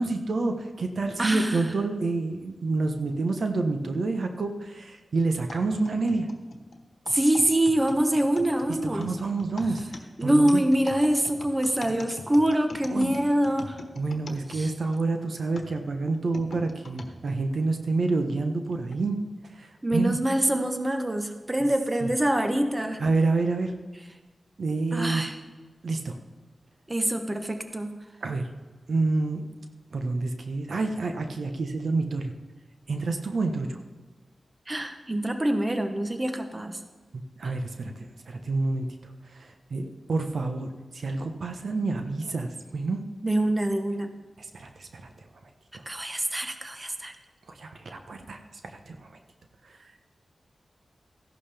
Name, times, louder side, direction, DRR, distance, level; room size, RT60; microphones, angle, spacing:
voice 1, 0.0-6.3 8.8-9.8 10.2-10.6 12.9-13.1 14.0-19.2 19.6-20.2 22.0-22.1 23.0-23.7 24.6-25.2 25.8-26.1 28.2-28.4 28.9-29.5 29.9-32.3 32.9-33.8 37.1-38.9 39.3-40.7 40.9-43.0 44.5-45.1 45.7-45.8 47.5-48.4 48.9-49.0, right 3 dB, 70° right, 5 dB, 1.0 m, -28 dB
voice 2, 1.2-1.7 7.1-9.1 10.2-13.8 14.5-14.7 19.8-23.0 24.9-25.4 26.9-27.9 34.7-36.8 43.2-44.1 45.9-47.2, right 1 dB, 25° right, 7 dB, 1.0 m, -25 dB
sound 1, 5.5-15.0 15.5-17.1 17.8-17.9 18.7-19.0, left 3 dB, 65° left, 1.2 m, -42 dB
15.0 x 11.5 x 3.5 m, 1.3 s
wide cardioid pair, 70°, 0 cm